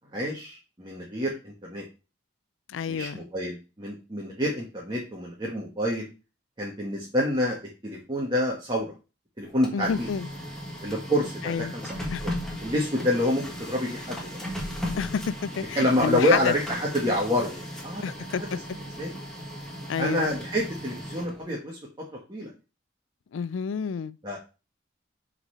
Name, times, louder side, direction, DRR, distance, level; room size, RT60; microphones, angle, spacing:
voice 1, 0.1-1.8 2.9-6.0 6.6-7.6 7.8-8.9 9.4-10.1 10.8-12.1 12.6-14.4 15.7-18.5 18.7-19.2 20.0-22.5 24.2-24.4, left 1 dB, 25° right, 1.4 m, -28 dB
voice 2, 2.7-3.2 9.7-10.3 11.4-11.7 12.1-12.2 14.9-16.5 18.0-18.4 19.9-20.3 23.3-24.2, left 6 dB, 90° left, 0.4 m, -29 dB
Printer, 9.5-21.5, equal, 5° left, 1.5 m, -37 dB
5.8 x 4.1 x 5.5 m
head